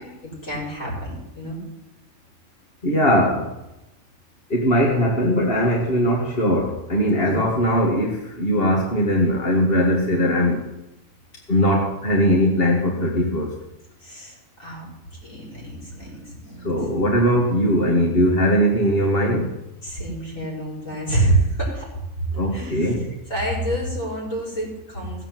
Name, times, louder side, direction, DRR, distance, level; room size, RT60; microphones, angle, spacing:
voice 1, 0.2-1.6 7.2-7.4 14.0-16.8 19.8-21.9 22.5-22.9 23.3-25.3, right 2 dB, 65° left, -3 dB, 6.2 m, -27 dB
voice 2, 2.8-3.5 4.5-10.6 11.5-13.6 16.6-19.5 22.3-23.1, equal, 40° left, -1 dB, 2.0 m, -20 dB
17.5 x 8.0 x 7.6 m, 0.95 s
omnidirectional pair, 1.5 m